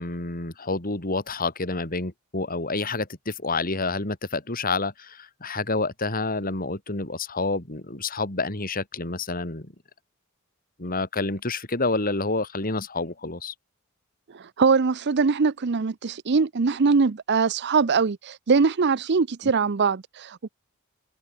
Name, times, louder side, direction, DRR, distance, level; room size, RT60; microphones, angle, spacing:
voice 1, 0.0-9.7 10.8-13.5, left 3 dB, 45° left, 3.3 m, -28 dB
voice 2, 14.3-20.5, right 5 dB, 55° right, 0.6 m, -22 dB
head